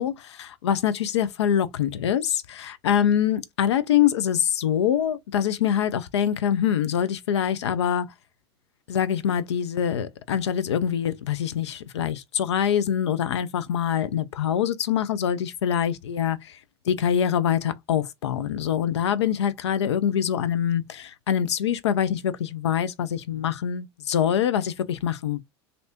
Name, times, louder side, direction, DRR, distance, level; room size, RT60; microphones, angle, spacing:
voice 1, 0.0-8.1 8.9-16.6 16.9-25.4, left 9 dB, 85° left, 0.5 m, -24 dB
3.3 x 2.7 x 2.7 m
hypercardioid pair, 100°, 14 cm